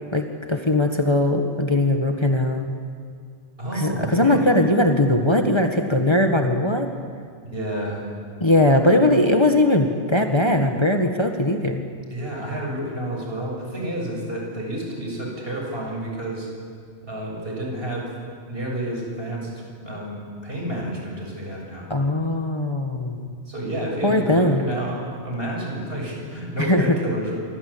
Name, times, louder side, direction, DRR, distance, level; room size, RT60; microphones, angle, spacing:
voice 1, 0.1-2.7 3.7-6.9 8.4-11.8 21.9-23.3 24.0-24.6 26.6-26.9, left 1 dB, 25° left, 4 dB, 1.7 m, -20 dB
voice 2, 3.6-4.5 7.4-8.0 12.1-16.5 17.0-18.1 18.5-19.5 19.8-21.9 23.5-27.4, right 1 dB, 60° right, -1 dB, 7.5 m, -30 dB
27.5 x 25.0 x 8.7 m, 2.1 s
omnidirectional pair, 1.1 m